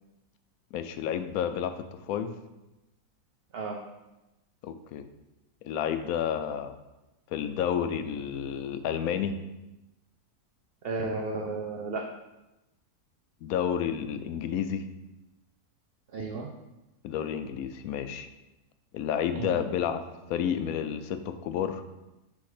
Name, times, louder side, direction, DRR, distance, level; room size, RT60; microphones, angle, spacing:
voice 1, 0.7-2.4 4.6-5.1 5.6-6.7 7.3-9.4 13.4-14.8 17.0-18.3 18.9-20.0 20.3-21.8, left 8 dB, 75° left, 9 dB, 1.0 m, -30 dB
voice 2, 10.8-12.1 16.1-16.5 19.3-19.6, right 3 dB, 65° right, 2 dB, 0.6 m, -33 dB
7.1 x 3.5 x 4.8 m, 0.98 s
omnidirectional pair, 1.6 m